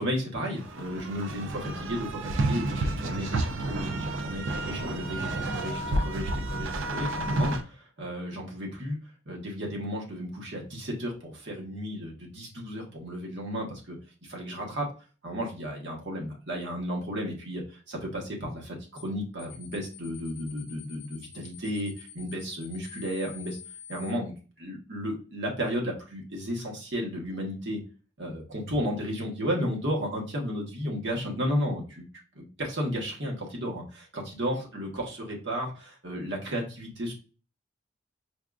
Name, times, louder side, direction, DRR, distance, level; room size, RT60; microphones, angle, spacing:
voice 1, 0.0-9.0 9.3-14.9 15.2-23.6 23.9-27.8 28.2-32.0 32.3-37.1, equal, 70° right, -1 dB, 1.2 m, -33 dB
sound 1, 0.6-7.6, right 2 dB, 90° right, 0.5 m, -30 dB
sound 2, 19.0-19.1 19.4-24.1, left 10 dB, 40° left, 0.8 m, -47 dB
4.6 x 2.4 x 2.4 m, 0.35 s
head